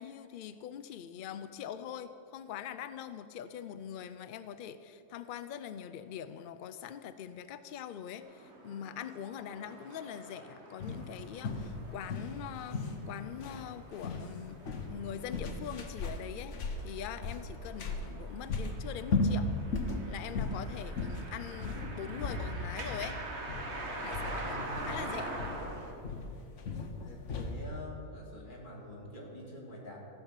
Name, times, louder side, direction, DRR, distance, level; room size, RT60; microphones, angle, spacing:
voice 1, 0.0-16.6 16.8-19.5 20.1-23.2 24.0-25.4, left 9 dB, 85° left, 12 dB, 0.4 m, -43 dB
sound 1, 8.2-25.9, right 2 dB, 50° right, 1.7 m, -45 dB
sound 2, 10.8-27.6, left 3 dB, 60° left, 1.2 m, -37 dB
voice 2, 24.3-24.7 26.9-30.0, left 1 dB, 35° left, -3 dB, 2.4 m, -46 dB
15.0 x 5.7 x 7.3 m, 2.6 s
omnidirectional pair, 1.4 m